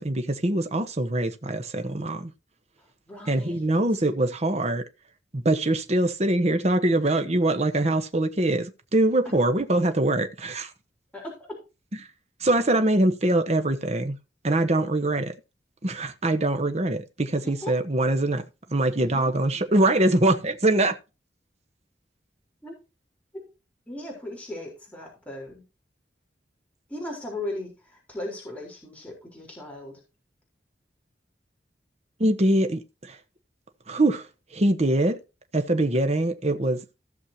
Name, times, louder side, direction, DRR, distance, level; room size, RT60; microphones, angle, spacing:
voice 1, 0.0-2.3 3.3-4.8 5.3-10.7 12.4-14.2 14.4-15.3 15.8-18.4 18.7-21.0 32.2-33.2 33.9-35.2 35.5-36.8, right 1 dB, 35° right, 1.1 m, -23 dB
voice 2, 2.8-3.6 11.1-11.6 12.5-12.6 17.4-17.7 19.0-19.7 22.6-22.7 23.3-23.5 23.9-25.6 26.9-30.0, left 1 dB, 10° left, 4.1 m, -38 dB
16.0 x 6.5 x 2.8 m
head